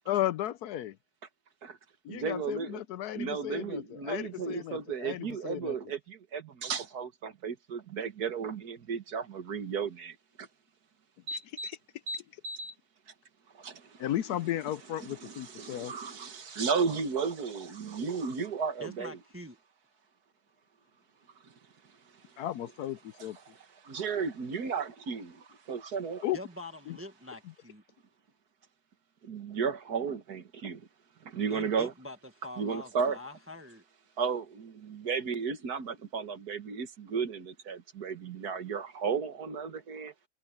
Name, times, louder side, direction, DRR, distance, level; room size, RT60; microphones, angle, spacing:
voice 1, 0.1-1.0 2.0-5.8 11.3-11.8 14.0-15.9 22.4-23.4 26.2-26.4 26.9-27.0, left 13 dB, 75° left, 1.1 m, -34 dB
voice 2, 2.1-2.7 3.2-10.1 11.3-11.7 12.1-12.7 13.6-13.7 15.2-19.1 23.9-25.3 25.7-26.2 29.3-30.8 31.3-31.9 32.6-33.2 34.2-40.1, right 5 dB, 70° right, 2.1 m, -34 dB
voice 3, 18.8-19.6 26.3-27.8 31.5-32.2 32.4-33.8, left 1 dB, 10° right, 1.4 m, -44 dB
omnidirectional pair, 1.7 m